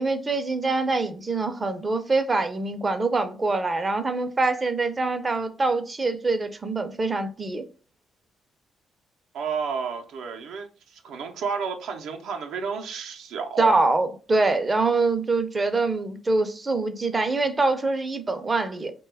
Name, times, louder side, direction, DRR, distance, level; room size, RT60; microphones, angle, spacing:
voice 1, 0.0-7.6 13.6-18.9, right 3 dB, 25° right, 0.5 m, -24 dB
voice 2, 9.3-13.8, right 6 dB, 80° right, 0.5 m, -31 dB
2.9 x 2.2 x 3.3 m
cardioid pair, 90°, 0 cm